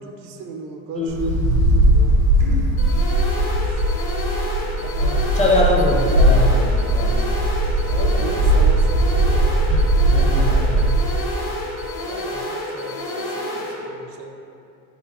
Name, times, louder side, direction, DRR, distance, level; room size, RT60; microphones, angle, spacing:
voice 1, 0.0-1.2 1.9-2.8 3.4-4.0 7.9-9.9 12.0-14.3, right 4 dB, 60° right, 3 dB, 0.6 m, -36 dB
voice 2, 1.0-1.3 5.0-7.1 9.7-9.8 10.1-10.8, left 1 dB, 20° left, -2 dB, 0.5 m, -23 dB
Wind, 1.1-11.1, right 1 dB, 85° right, 1.2 m, -18 dB
sound 1, 2.8-13.8, left 1 dB, 55° left, 1.1 m, -29 dB
4.2 x 3.9 x 2.9 m, 2.5 s
supercardioid pair, 115°, 37 cm